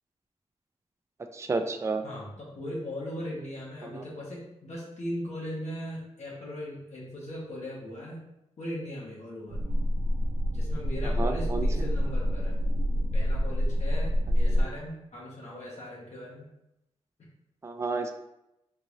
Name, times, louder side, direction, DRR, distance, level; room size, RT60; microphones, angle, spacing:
voice 1, 1.3-2.0 3.8-4.0 11.2-11.7 17.6-18.1, right 3 dB, 25° right, 6 dB, 0.3 m, -31 dB
voice 2, 2.0-8.2 8.6-9.6 10.5-12.6 13.1-16.4, equal, 70° left, -5 dB, 1.1 m, -38 dB
sound 1, 9.5-14.7, equal, 75° right, 0.5 m, -27 dB
3.8 x 2.5 x 3.0 m, 0.87 s
cardioid pair, 70°, 12 cm